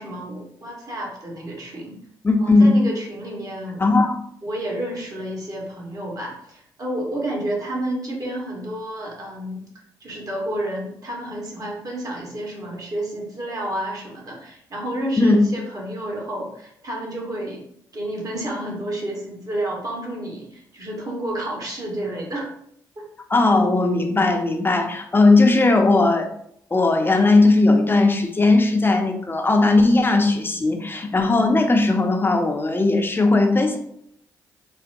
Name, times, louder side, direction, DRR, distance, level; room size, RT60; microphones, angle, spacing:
voice 1, 0.0-2.0 2.4-3.8 4.4-9.6 10.0-17.6 17.9-22.5 23.0-23.1, right 1 dB, 45° right, -2 dB, 1.4 m, -30 dB
voice 2, 2.2-2.8 3.8-4.1 15.2-15.4 23.3-26.3 26.7-33.8, left 2 dB, 25° left, 4 dB, 0.6 m, -17 dB
3.9 x 2.1 x 2.6 m, 0.68 s
supercardioid pair, 45°, 9 cm